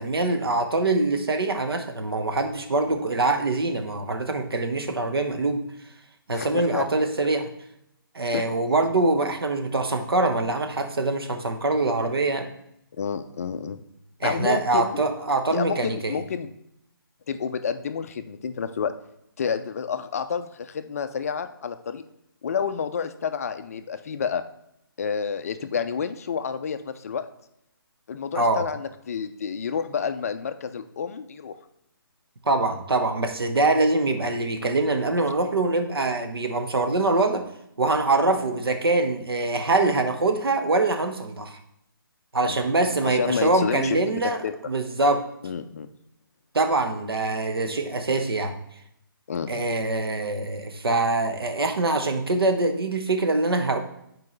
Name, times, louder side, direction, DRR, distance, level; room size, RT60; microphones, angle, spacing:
voice 1, 0.0-5.6 6.3-7.5 8.1-12.5 14.2-16.2 28.4-28.6 32.4-37.4 37.8-41.6 42.3-44.4 44.7-45.2 46.5-48.5 49.5-53.8, right 2 dB, 85° right, 6 dB, 1.0 m, -24 dB
voice 2, 6.3-6.8 8.3-8.4 13.0-13.8 14.2-15.0 15.5-16.5 17.3-18.9 19.4-22.0 22.4-24.4 25.0-27.3 28.1-31.5 42.5-42.6 43.0-44.6 45.4-45.9 49.3-49.7, left 6 dB, 40° left, 10 dB, 0.4 m, -29 dB
7.5 x 4.6 x 3.1 m, 0.77 s
hypercardioid pair, 160°, 12 cm